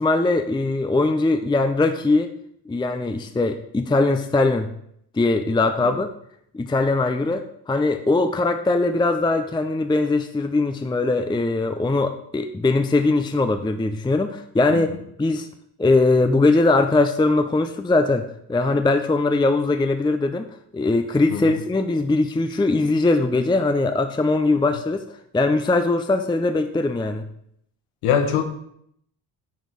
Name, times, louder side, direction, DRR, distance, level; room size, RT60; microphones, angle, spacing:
voice 1, 0.0-2.3 2.7-4.7 5.1-6.1 6.5-14.9 15.2-15.5 15.8-18.2 18.5-20.5 20.7-25.0 25.3-27.2, left 2 dB, 10° left, 7 dB, 0.6 m, -21 dB
voice 2, 28.0-28.5, left 8 dB, 80° left, 7 dB, 1.3 m, -22 dB
9.2 x 4.6 x 5.1 m, 0.70 s
supercardioid pair, 65°, 49 cm